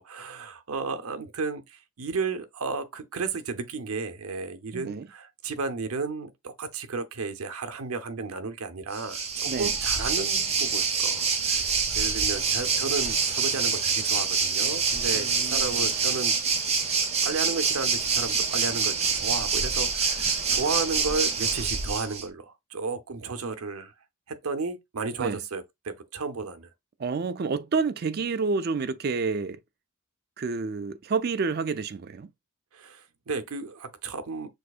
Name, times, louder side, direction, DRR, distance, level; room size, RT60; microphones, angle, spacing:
voice 1, 0.0-16.3 17.2-23.9 24.3-26.7 32.7-34.5, right 4 dB, 75° right, 0.7 m, -33 dB
voice 2, 4.7-5.1 9.5-9.7 15.1-15.9 25.2-25.4 27.0-29.6 30.4-32.3, right 4 dB, 45° right, 0.4 m, -29 dB
Waves surf, 8.9-22.2, right 5 dB, 30° right, 0.8 m, -26 dB
6.3 x 2.8 x 2.4 m
head